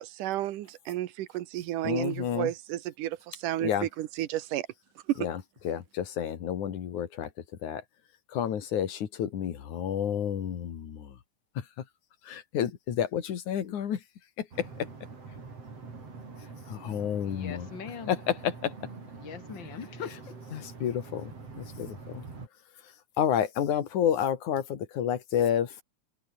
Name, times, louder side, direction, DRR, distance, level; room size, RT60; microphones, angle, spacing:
voice 1, 0.0-3.7 4.0-4.7 5.1-5.2, right 14 dB, 85° right, 2.7 m, -32 dB
voice 2, 1.8-2.5 3.6-3.9 5.2-7.3 7.6-7.8 8.3-11.2 11.6-11.7 12.2-14.0 14.4-14.9 16.7-17.7 18.1-18.7 20.5-22.2 23.2-25.8, left 9 dB, 70° left, 3.5 m, -30 dB
sound 1, 14.5-22.5, right 4 dB, 50° right, 6.0 m, -45 dB
voice 3, 17.2-18.2 19.2-20.4, left 7 dB, 40° left, 3.0 m, -41 dB
omnidirectional pair, 3.6 m